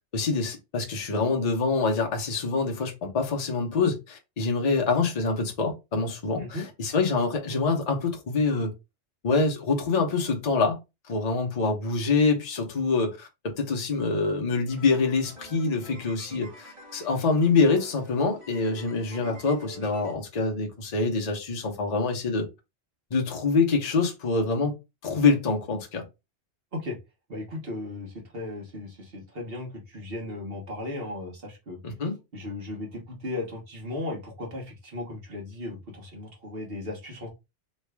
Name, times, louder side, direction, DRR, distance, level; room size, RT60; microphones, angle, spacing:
voice 1, 0.1-8.7 9.2-10.8 11.1-13.3 13.6-22.5 23.1-24.8 25.0-26.0 31.8-32.1, left 4 dB, 40° left, 0.8 m, -25 dB
voice 2, 6.4-6.7 26.7-27.0 27.3-31.8 32.3-37.3, left 2 dB, 60° right, 1.4 m, -36 dB
sound 1, 14.7-20.2, right 1 dB, 25° right, 1.4 m, -47 dB
3.2 x 2.3 x 3.2 m
omnidirectional pair, 1.2 m